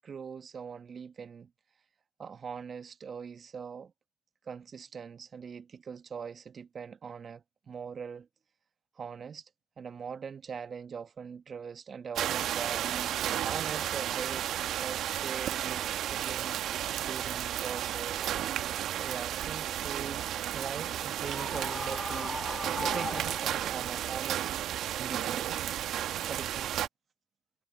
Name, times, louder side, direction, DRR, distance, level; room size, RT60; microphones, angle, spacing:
voice 1, 0.0-1.5 2.2-3.9 4.5-8.3 9.0-9.5 9.8-14.5 14.8-18.3 19.0-20.3 20.5-24.5 25.0-25.6 26.3-26.7, right 6 dB, 50° right, 1.5 m, -42 dB
sound 1, 12.2-26.9, right 11 dB, 65° right, 1.4 m, -33 dB
Screaming, 21.2-23.9, left 2 dB, 25° left, 1.3 m, -38 dB
hypercardioid pair, 45°, 0 cm